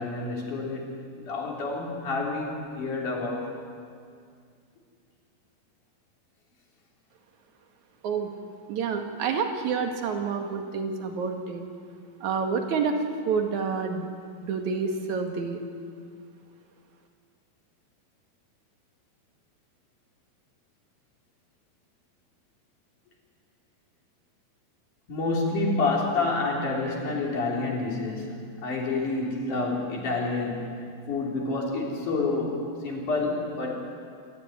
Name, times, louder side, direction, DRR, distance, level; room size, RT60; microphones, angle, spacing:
voice 1, 0.0-3.5 25.1-30.8 31.1-33.8, left 3 dB, 55° left, -2 dB, 4.9 m, -28 dB
voice 2, 8.7-11.6 12.2-13.0 13.3-14.1 14.4-15.6, right 5 dB, 55° right, 4 dB, 2.9 m, -28 dB
26.5 x 14.5 x 9.4 m, 2.2 s
omnidirectional pair, 4.3 m